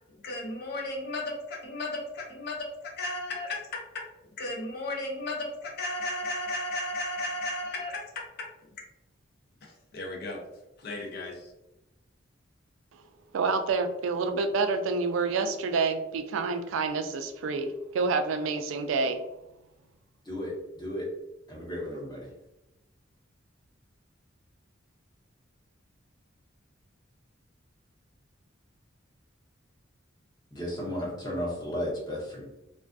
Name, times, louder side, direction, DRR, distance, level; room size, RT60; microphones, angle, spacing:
voice 1, 0.2-2.7 3.0-4.0 4.4-8.3 9.9-10.4 10.8-11.4, left 2 dB, 55° left, 0 dB, 0.6 m, -34 dB
voice 2, 13.3-19.2, right 4 dB, 75° right, 7 dB, 0.3 m, -28 dB
voice 3, 21.5-22.3 30.5-32.4, equal, 20° left, -4 dB, 0.8 m, -34 dB
2.4 x 2.3 x 2.5 m, 0.92 s
head